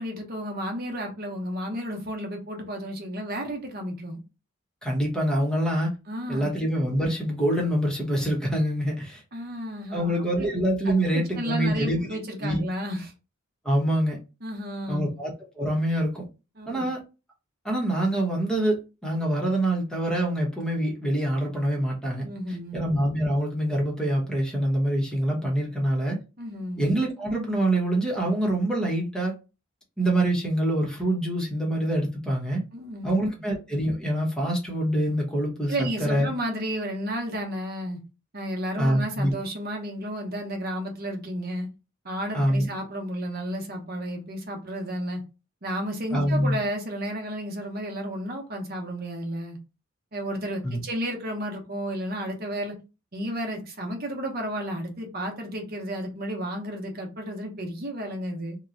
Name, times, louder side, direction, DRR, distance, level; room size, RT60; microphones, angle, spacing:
voice 1, 0.0-4.2 6.1-6.5 9.3-10.5 10.8-13.1 14.4-15.1 16.6-16.9 22.2-22.8 26.4-26.8 32.7-33.1 35.7-38.0 38.3-41.7 42.0-45.2 45.6-49.6 50.1-52.8 53.1-58.6, equal, 45° right, 1.0 m, -32 dB
voice 2, 4.8-5.9 6.3-9.2 9.9-12.0 12.4-12.6 13.6-14.2 14.9-16.2 16.7-17.0 17.6-22.2 22.7-26.2 26.8-29.3 30.0-32.6 33.0-36.3 38.8-39.3 42.3-42.7 46.1-46.6 50.6-50.8, right 1 dB, 5° left, 1.0 m, -25 dB
2.9 x 2.3 x 3.8 m
head